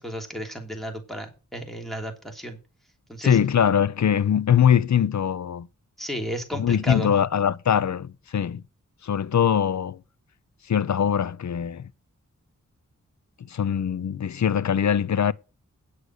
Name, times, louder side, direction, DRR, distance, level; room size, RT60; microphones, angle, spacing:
voice 1, 0.0-2.6 3.1-3.4 6.0-7.1, equal, ahead, 3.2 m, -33 dB
voice 2, 3.2-5.7 6.6-8.6 9.0-10.0 10.7-11.9 13.5-15.3, left 8 dB, 65° left, 0.6 m, -22 dB
9.7 x 8.0 x 6.6 m
wide cardioid pair, 120°, 31 cm